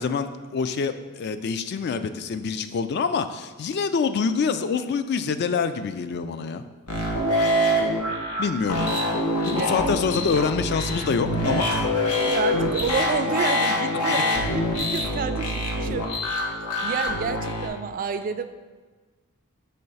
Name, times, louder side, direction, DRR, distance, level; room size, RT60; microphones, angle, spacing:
voice 1, 0.0-6.6 8.4-8.8 9.5-11.9 14.1-14.2, left 5 dB, 50° left, 10 dB, 0.3 m, -26 dB
sound 1, 6.9-17.7, left 1 dB, 85° left, 1.0 m, -25 dB
voice 2, 9.5-9.9 12.2-16.5 16.8-18.5, right 6 dB, 40° right, 9 dB, 0.3 m, -30 dB
5.7 x 3.2 x 5.4 m, 1.3 s
head